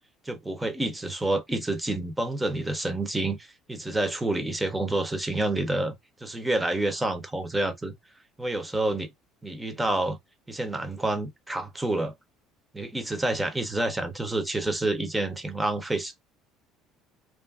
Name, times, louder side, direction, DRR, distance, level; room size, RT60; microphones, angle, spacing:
voice 1, 0.2-7.9 8.4-9.1 9.4-10.2 10.5-12.1 12.7-16.1, right 2 dB, 10° right, 0.5 m, -28 dB
3.0 x 2.4 x 2.3 m
cardioid pair, 140°, 0 cm